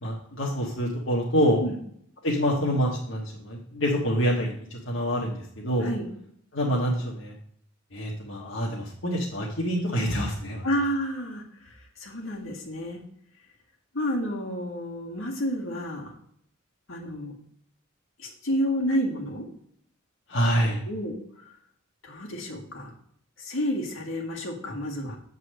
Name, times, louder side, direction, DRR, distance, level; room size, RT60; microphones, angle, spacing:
voice 1, 0.0-1.6 2.2-5.9 6.5-7.3 7.9-10.6 20.3-20.8, equal, 65° left, -3 dB, 1.4 m, -26 dB
voice 2, 10.6-11.7 12.0-13.0 13.9-16.1 16.9-17.3 18.2-19.5 20.9-21.2 22.0-22.9 23.4-25.2, equal, 80° left, -1 dB, 1.9 m, -30 dB
7.9 x 4.1 x 6.3 m, 0.66 s
head